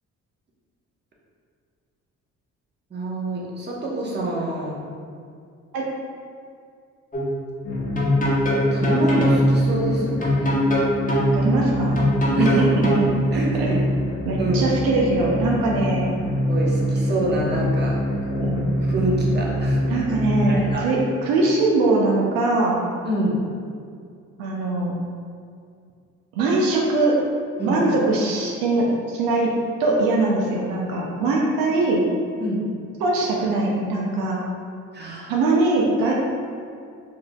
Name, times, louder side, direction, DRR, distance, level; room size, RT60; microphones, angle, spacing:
voice 1, 2.9-4.8 8.7-10.6 12.4-12.7 13.3-13.8 14.4-14.7 16.5-18.0 18.3-18.5 18.9-19.8 20.5-20.9 23.0-23.4 27.6-27.8 32.4-32.6 34.9-35.3, right 1 dB, 30° right, -4 dB, 1.0 m, -27 dB
sound 1, 7.1-7.3 8.0-9.4 10.2-11.3 12.0-13.0, equal, 25° left, 1.0 m, -22 dB
sound 2, 7.6-20.7, equal, 90° left, 0.7 m, -24 dB
voice 2, 11.3-12.0 12.4-13.7 14.3-16.2 18.4-18.7 19.9-22.8 24.4-24.9 26.3-27.1 27.6-29.5 29.8-32.0 33.0-34.5 35.3-36.1, right 2 dB, 85° right, -2 dB, 0.5 m, -22 dB
4.7 x 2.6 x 2.3 m, 2.3 s
supercardioid pair, 60°, 34 cm